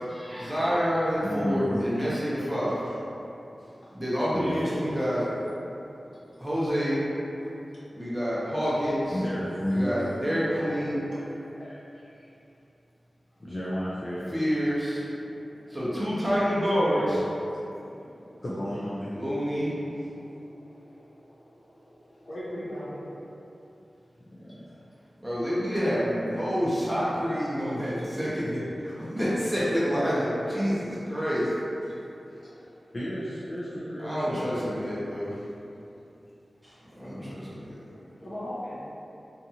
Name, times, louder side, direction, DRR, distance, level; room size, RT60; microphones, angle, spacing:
voice 1, 0.1-2.8 3.9-5.2 6.4-7.0 7.9-9.2 9.7-11.0 14.3-15.0 15.7-17.2 19.1-19.7 25.2-31.5 34.0-35.3 37.0-37.8, equal, 10° right, -9 dB, 0.7 m, -27 dB
voice 2, 1.2-1.9 4.3-4.8 9.1-10.1 13.4-14.4 17.0-17.2 18.4-19.1 24.2-24.8 32.9-34.4 37.0-37.4, equal, 40° left, -8 dB, 0.4 m, -32 dB
voice 3, 3.1-4.0 5.6-6.2 11.0-12.3 15.0-16.1 17.6-18.4 19.2-23.5 24.5-24.6 25.9-26.2 28.1-28.2 31.8-32.1 32.4-32.7 36.0-36.2 36.8-38.8, equal, 70° left, -11 dB, 0.9 m, -44 dB
2.6 x 2.4 x 2.7 m, 2.8 s
wide cardioid pair, 100°, 0 cm